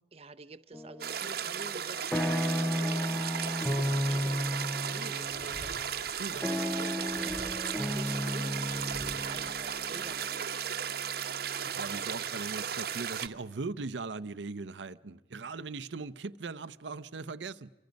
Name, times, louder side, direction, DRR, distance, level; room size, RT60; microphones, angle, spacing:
voice 1, 0.1-5.7 6.3-10.5, right 3 dB, 35° right, 0.7 m, -48 dB
sound 1, 0.7-1.3 1.7-11.7, equal, 5° left, 0.7 m, -34 dB
sound 2, 1.0-13.3, right 8 dB, 60° right, 0.9 m, -35 dB
sound 3, 5.2-10.6, equal, 30° left, 7.5 m, -52 dB
voice 2, 11.6-17.7, right 4 dB, 90° right, 0.7 m, -39 dB
27.5 x 25.5 x 5.2 m
head